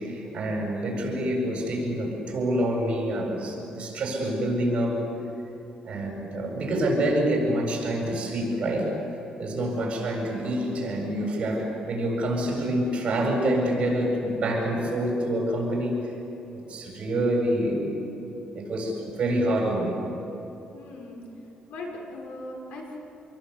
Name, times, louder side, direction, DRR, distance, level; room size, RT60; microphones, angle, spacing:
voice 1, 0.0-5.0 5.8-8.9 9.4-16.0 16.5-17.9 18.5-20.0, right 1 dB, 45° right, -1 dB, 8.0 m, -27 dB
voice 2, 20.7-21.2 21.7-23.0, left 2 dB, 85° left, 0 dB, 6.3 m, -39 dB
28.0 x 22.5 x 8.4 m, 3.0 s
cardioid pair, 130°, 2 cm